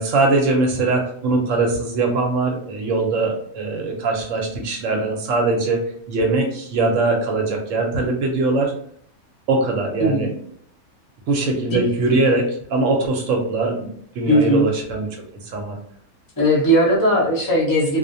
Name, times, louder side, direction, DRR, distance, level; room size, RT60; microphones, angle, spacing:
voice 1, 0.0-8.7 9.5-10.3 11.3-13.9 14.2-15.3 15.5-15.8, right 3 dB, 65° right, 1 dB, 0.9 m, -21 dB
voice 2, 10.0-10.3 11.7-11.8 14.3-14.7 16.4-18.0, equal, 25° left, -5 dB, 0.5 m, -18 dB
2.4 x 2.1 x 2.6 m, 0.64 s
omnidirectional pair, 1.6 m